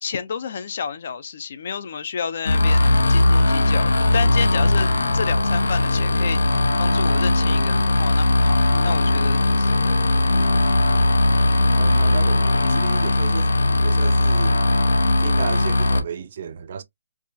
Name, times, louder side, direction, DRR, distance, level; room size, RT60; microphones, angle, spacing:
voice 1, 0.0-6.4 6.8-10.1, left 6 dB, 40° left, 0.5 m, -31 dB
sound 1, 2.5-16.0, left 2 dB, 85° left, 0.9 m, -18 dB
voice 2, 11.8-13.5 13.8-14.6 15.2-16.8, right 7 dB, 35° right, 0.4 m, -32 dB
4.7 x 2.3 x 2.6 m
hypercardioid pair, 175°, 0 cm